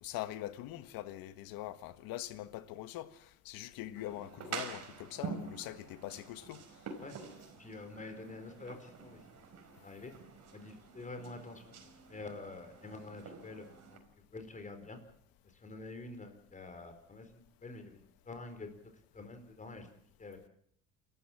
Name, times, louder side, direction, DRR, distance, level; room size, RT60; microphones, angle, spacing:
voice 1, 0.0-6.6, left 14 dB, 80° left, 1.5 m, -43 dB
sound 1, 3.9-14.0, right 6 dB, 50° right, 4.9 m, -47 dB
voice 2, 7.6-9.2 9.8-10.1 10.5-11.8 12.1-14.0 14.3-15.0 15.5-18.0 18.3-18.8 19.1-19.9 20.2-20.4, left 3 dB, 20° left, 4.5 m, -47 dB
28.0 x 14.5 x 7.4 m
cardioid pair, 125°, 35 cm